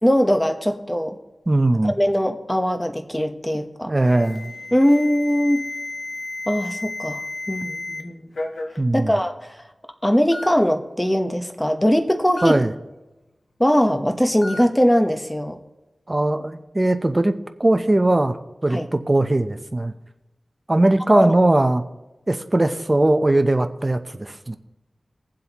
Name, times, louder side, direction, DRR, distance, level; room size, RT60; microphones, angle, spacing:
voice 1, 0.0-1.2 1.8-3.9 4.7-5.6 6.5-8.3 8.9-9.3 10.0-12.6 13.6-15.6 18.7-18.9 21.1-21.3, equal, 10° left, 6 dB, 1.1 m, -20 dB
voice 2, 1.5-1.9 3.9-4.6 8.8-9.2 12.4-12.7 16.1-18.4 18.6-19.9 20.7-21.8 22.3-24.6, right 2 dB, 25° right, 9 dB, 0.7 m, -19 dB
Alarm, 4.0-8.0 8.3-8.8 9.6-9.7 10.3-10.5 12.4-12.6 14.4-14.6, left 2 dB, 85° left, 1.2 m, -32 dB
21.5 x 7.6 x 3.0 m, 1.0 s
wide cardioid pair, 70°, 0 cm